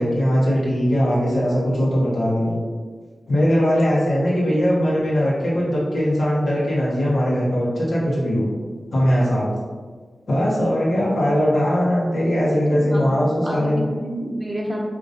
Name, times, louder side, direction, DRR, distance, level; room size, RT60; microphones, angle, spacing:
voice 1, 0.0-2.6 3.3-8.4 8.9-9.5 10.3-13.9, equal, 85° left, -7 dB, 1.3 m, -20 dB
voice 2, 12.7-14.8, right 1 dB, 20° right, -3 dB, 1.0 m, -29 dB
5.0 x 2.9 x 2.7 m, 1.5 s
cardioid pair, 60°, 0 cm